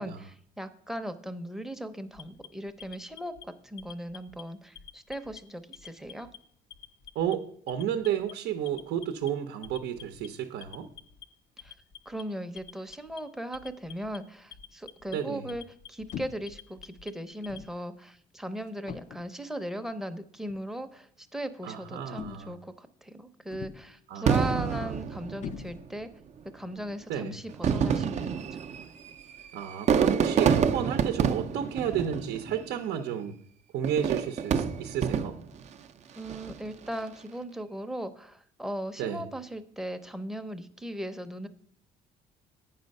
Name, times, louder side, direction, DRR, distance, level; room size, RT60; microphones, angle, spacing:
voice 1, 0.0-6.3 11.6-11.7 12.1-15.6 15.9-26.1 26.5-28.6 36.2-41.5, equal, ahead, 8 dB, 0.7 m, -38 dB
Alarm, 2.1-3.4 3.8-4.4 4.7-5.4 5.7-6.4 6.7-7.3 7.7-8.3 8.7-9.3 9.6-10.3 10.6-11.2 11.6-12.2 12.6-13.2 13.5-14.2 14.5-15.1 15.5-16.1 16.5-17.6, left 9 dB, 60° left, 0.8 m, -47 dB
voice 2, 7.1-10.9 15.1-15.5 21.6-22.6 24.1-24.9 27.1-27.3 29.5-33.4 33.7-35.4 39.0-39.2, right 9 dB, 75° right, 6 dB, 0.7 m, -32 dB
sound 1, 16.1-16.6 17.5-17.8 18.9-19.4 20.5-20.7 22.2-22.7 23.5-24.0 25.4-26.1, left 8 dB, 45° left, 0.4 m, -42 dB
Fireworks, 24.3-25.9 26.7-26.8 27.5-32.8 33.8-35.6 36.2-36.7, right 7 dB, 45° right, 0.5 m, -27 dB
8.8 x 5.6 x 5.3 m, 0.64 s
cardioid pair, 110°, 17 cm